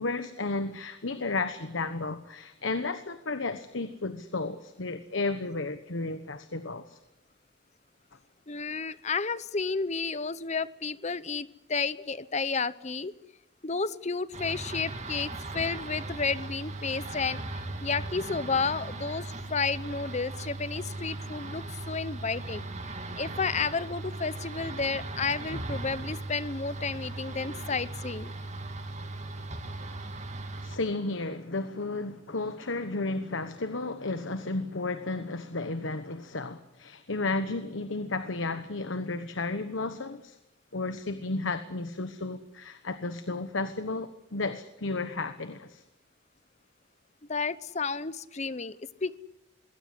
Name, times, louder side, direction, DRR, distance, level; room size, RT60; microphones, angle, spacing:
voice 1, 0.0-7.0 30.6-40.4 40.7-45.8, left 3 dB, 75° left, 1.2 m, -33 dB
voice 2, 8.5-13.1 13.6-22.7 23.2-28.3 47.3-49.2, left 4 dB, 35° left, 0.8 m, -32 dB
sound 1, 14.3-30.8, right 2 dB, 35° right, 2.4 m, -38 dB
22.5 x 17.5 x 9.9 m
head